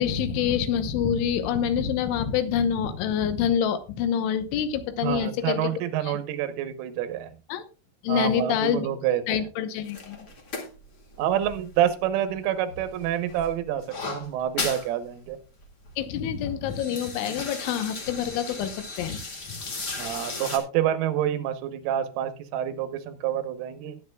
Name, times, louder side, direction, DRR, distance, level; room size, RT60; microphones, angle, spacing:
voice 1, 0.0-5.7 6.0-6.2 7.5-7.6 8.0-8.9 9.3-10.2 16.0-19.2 19.5-19.6, left 8 dB, 80° left, 10 dB, 3.3 m, -26 dB
voice 2, 5.0-7.3 8.1-9.4 11.2-15.4 20.0-24.0, right 10 dB, 90° right, 10 dB, 3.6 m, -27 dB
sound 1, 9.8-12.4 12.7-14.9 15.3-15.4 15.6-16.0 16.5-20.6, left 3 dB, 55° left, 1.1 m, -36 dB
20.0 x 8.4 x 2.3 m, 0.33 s
omnidirectional pair, 5.6 m